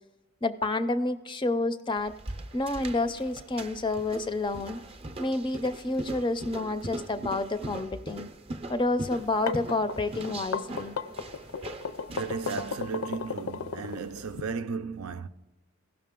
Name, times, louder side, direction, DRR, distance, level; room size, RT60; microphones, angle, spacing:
voice 1, 0.4-2.1 2.5-4.8 5.2-8.3 8.7-11.0, left 2 dB, 20° left, 0.4 m, -29 dB
sound 1, 2.0-12.9, right 2 dB, 30° right, 0.5 m, -41 dB
sound 2, 9.2-14.4, left 5 dB, 85° left, 0.6 m, -35 dB
voice 2, 12.1-15.3, right 5 dB, 90° right, 0.5 m, -35 dB
16.0 x 6.1 x 3.7 m
head